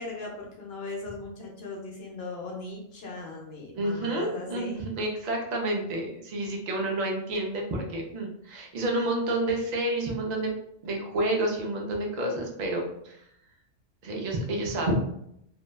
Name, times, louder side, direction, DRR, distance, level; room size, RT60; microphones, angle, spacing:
voice 1, 0.0-4.8, left 3 dB, 60° left, -1 dB, 0.8 m, -38 dB
voice 2, 3.7-10.5 10.8-13.2 14.0-14.9, right 1 dB, 80° right, 0 dB, 0.3 m, -29 dB
2.7 x 2.2 x 2.2 m, 0.75 s
omnidirectional pair, 1.3 m